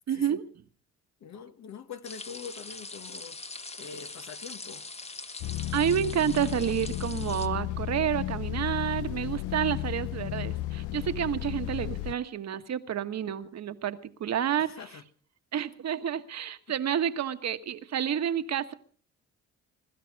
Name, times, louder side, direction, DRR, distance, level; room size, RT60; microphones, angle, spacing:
voice 1, 0.1-0.4 5.7-14.7 15.5-18.7, right 9 dB, 60° right, 1.4 m, -29 dB
voice 2, 1.2-3.4 3.8-4.9 14.6-15.0, left 6 dB, 65° left, 1.4 m, -44 dB
sound 1, 2.0-7.5, left 3 dB, 20° left, 1.1 m, -43 dB
sound 2, 5.4-12.1, left 15 dB, 85° left, 0.7 m, -33 dB
23.0 x 12.5 x 4.6 m
cardioid pair, 90°, 30 cm